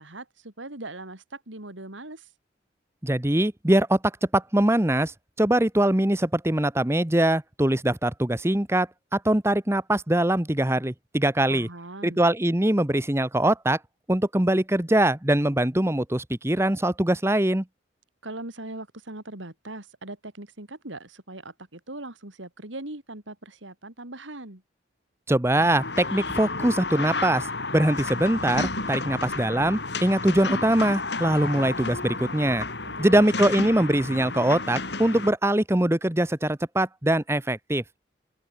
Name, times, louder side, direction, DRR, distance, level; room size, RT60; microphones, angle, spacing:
voice 1, 0.0-2.3 11.5-12.3 18.2-24.6 32.8-33.4, right 2 dB, 85° right, 3.9 m, -40 dB
voice 2, 3.0-4.0 4.3-5.1 5.4-8.9 9.1-11.7 12.0-13.8 14.1-17.6 25.3-27.5 27.7-32.7 33.0-37.8, right 1 dB, 15° right, 1.1 m, -22 dB
sound 1, 25.5-35.3, left 3 dB, 60° left, 4.9 m, -31 dB
open air
head